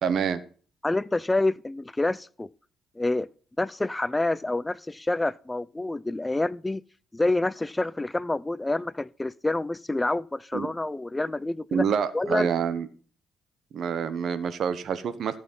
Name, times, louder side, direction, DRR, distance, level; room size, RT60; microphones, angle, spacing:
voice 1, 0.0-0.4 10.5-10.7 11.7-12.9 13.7-15.4, right 7 dB, 65° right, 1.2 m, -27 dB
voice 2, 0.8-2.5 3.0-3.3 3.6-6.8 7.1-11.8 12.1-12.5, left 2 dB, 15° left, 0.5 m, -27 dB
15.0 x 6.4 x 5.5 m
cardioid pair, 90°, 0 cm